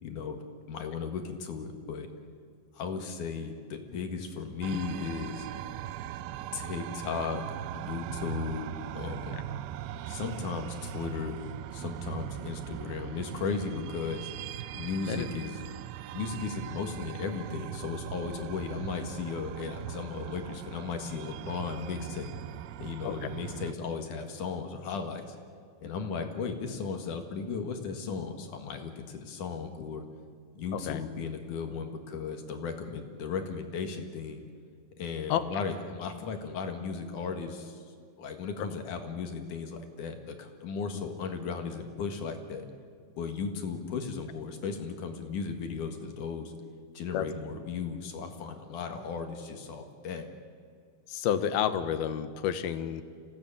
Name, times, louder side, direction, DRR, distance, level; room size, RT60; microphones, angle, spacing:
voice 1, 0.0-0.4 0.7-2.1 2.7-5.5 6.5-7.4 7.7-9.4 10.1-11.4 11.7-14.3 14.7-15.6 16.1-22.3 22.8-25.4 25.8-30.0 30.5-34.4 35.0-37.8 38.2-42.6 43.2-46.5 46.9-50.3, left 5 dB, 60° left, 5 dB, 3.0 m, -36 dB
sound 1, 4.6-23.7, right 12 dB, 80° right, 2.6 m, -40 dB
voice 2, 51.1-53.0, left 9 dB, 80° left, 11 dB, 3.0 m, -30 dB
27.0 x 17.0 x 8.8 m, 2.2 s
omnidirectional pair, 4.4 m